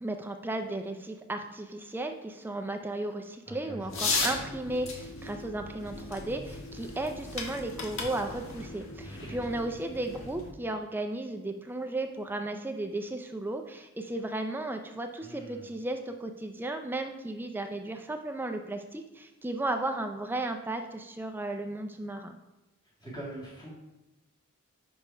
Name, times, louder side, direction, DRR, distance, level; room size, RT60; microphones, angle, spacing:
voice 1, 0.0-22.3, right 2 dB, 10° right, 5 dB, 0.4 m, -35 dB
voice 2, 3.5-4.2 9.0-9.4 15.2-15.7 23.0-23.7, right 1 dB, 20° left, -4 dB, 1.7 m, -43 dB
sound 1, 3.9-10.5, left 3 dB, 65° left, 1.4 m, -36 dB
5.4 x 5.0 x 5.5 m, 1.0 s
head